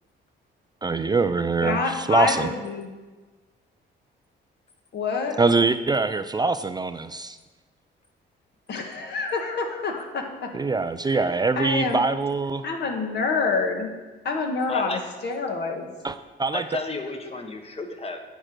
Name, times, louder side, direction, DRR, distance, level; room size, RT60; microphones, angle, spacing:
voice 1, 0.8-2.5 5.4-7.4 10.5-12.6 16.0-16.6, right 3 dB, 20° right, 11 dB, 0.3 m, -23 dB
voice 2, 1.6-2.9 4.9-5.4 8.7-10.5 11.0-12.0 12.6-13.9 14.2-15.9, left 4 dB, 60° left, 3 dB, 1.4 m, -27 dB
voice 3, 14.7-15.0 16.5-18.2, left 3 dB, 30° left, 6 dB, 1.1 m, -32 dB
8.9 x 5.0 x 6.2 m, 1.2 s
cardioid pair, 90°, 20 cm